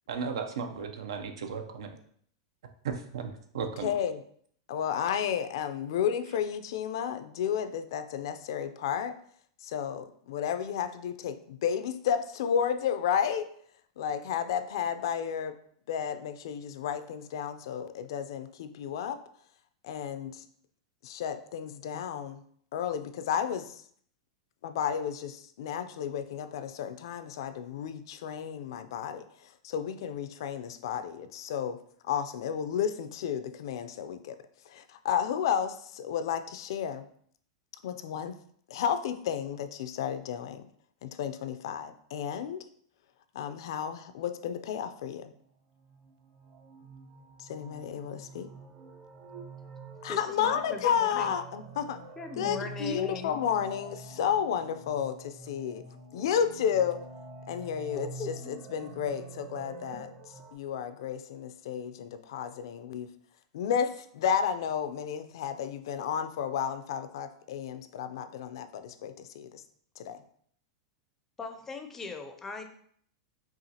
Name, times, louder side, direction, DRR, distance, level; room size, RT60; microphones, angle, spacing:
voice 1, 0.1-1.9 2.8-3.9, right 6 dB, 85° right, 7 dB, 0.6 m, -35 dB
voice 2, 3.8-4.2 4.7-9.2 9.6-13.5 14.0-15.5 15.9-19.2 19.8-20.4 21.0-22.4 22.7-23.8 24.6-34.4 34.7-37.0 37.8-38.4 38.7-40.7 41.0-42.6 43.3-45.3 47.4-48.5 50.0-52.0 52.4-55.8 56.1-57.0 57.5-60.1 60.5-63.1 63.5-69.6 70.0-70.2, left 8 dB, 70° left, 10 dB, 0.4 m, -32 dB
sound 1, 45.8-60.5, right 3 dB, 35° right, 0.7 m, -47 dB
voice 3, 50.1-51.3 52.2-53.4 57.9-58.6 59.9-60.0 71.4-72.6, left 4 dB, 15° left, 6 dB, 0.5 m, -39 dB
5.7 x 2.4 x 2.8 m, 0.62 s
supercardioid pair, 145°, 3 cm